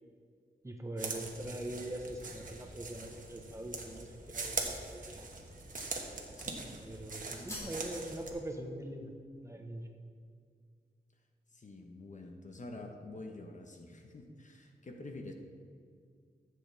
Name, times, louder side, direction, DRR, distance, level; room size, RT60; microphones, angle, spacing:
voice 1, 0.6-5.2 6.8-9.1 9.4-9.9, right 1 dB, 15° right, 3 dB, 1.1 m, -42 dB
sound 1, 1.0-8.3, right 3 dB, 50° right, 1.3 m, -42 dB
sound 2, 5.3-6.0 6.3-6.8 7.1-7.8 8.1-8.3, equal, 15° left, 2.8 m, -49 dB
voice 2, 6.3-6.7 7.3-7.8 11.5-15.3, left 2 dB, 45° left, 3 dB, 1.2 m, -48 dB
15.0 x 7.9 x 3.5 m, 2.2 s
wide cardioid pair, 85°, 17 cm